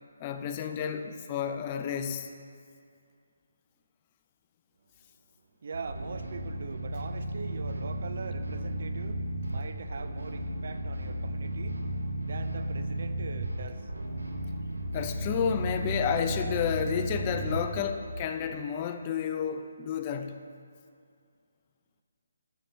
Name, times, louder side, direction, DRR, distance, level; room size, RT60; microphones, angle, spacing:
voice 1, 0.2-2.3 14.9-20.5, left 7 dB, 30° left, 7 dB, 0.4 m, -31 dB
voice 2, 5.6-11.8 12.2-13.9 14.6-14.8, right 4 dB, 55° right, 9 dB, 0.4 m, -42 dB
sound 1, 5.7-18.2, right 1 dB, 85° right, 0.9 m, -34 dB
7.8 x 5.7 x 4.3 m, 2.3 s
figure-of-eight pair, 145°, 0 cm